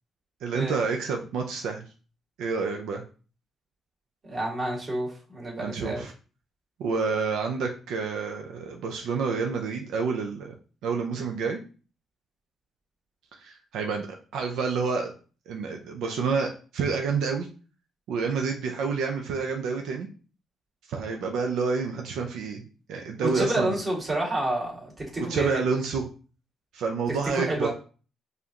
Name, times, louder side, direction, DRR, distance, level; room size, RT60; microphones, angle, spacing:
voice 1, 0.4-1.8 2.4-3.0 5.6-6.1 6.8-10.5 10.8-11.6 13.3-14.1 14.3-15.1 15.5-17.5 18.1-20.1 20.9-22.6 22.9-23.7 25.3-26.0 26.7-27.7, right 5 dB, 85° right, 2 dB, 0.5 m, -28 dB
voice 2, 4.2-6.1 23.3-25.6 27.3-27.7, right 1 dB, 30° right, -2 dB, 1.9 m, -29 dB
4.9 x 2.6 x 2.8 m, 0.38 s
cardioid pair, 90°, 0 cm